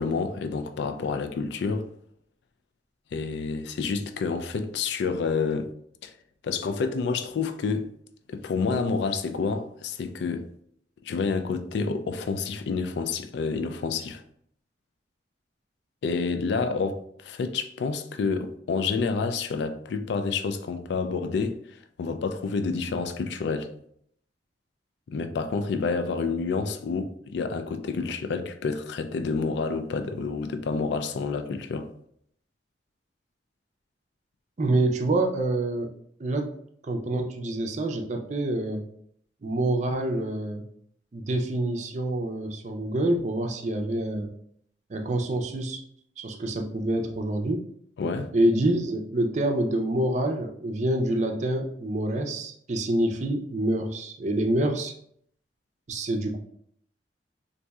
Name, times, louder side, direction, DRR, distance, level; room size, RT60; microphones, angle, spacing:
voice 1, 0.0-1.9 3.1-5.7 6.0-6.1 6.4-7.9 8.3-10.5 11.0-14.2 16.0-21.6 22.0-23.7 25.1-31.9 48.0-48.3, left 4 dB, 65° left, 0.3 m, -29 dB
voice 2, 34.6-35.9 36.2-36.6 36.8-38.8 39.4-40.6 41.1-44.3 44.9-45.8 46.2-47.6 48.3-54.9 55.9-56.4, right 1 dB, 40° right, 0.4 m, -26 dB
4.1 x 2.6 x 2.3 m
head